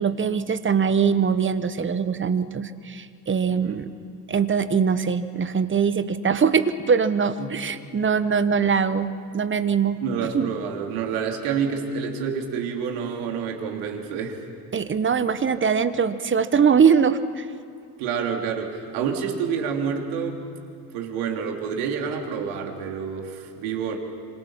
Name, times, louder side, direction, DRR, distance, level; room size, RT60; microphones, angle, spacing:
voice 1, 0.0-3.9 4.3-10.5 14.7-17.5, right 6 dB, 25° right, 12 dB, 1.1 m, -22 dB
voice 2, 3.5-3.8 7.4-7.6 10.0-14.4 18.0-20.4 20.9-24.0, right 6 dB, 65° right, 2 dB, 3.3 m, -28 dB
26.5 x 25.5 x 5.9 m, 2.5 s
hypercardioid pair, 75°, 50 cm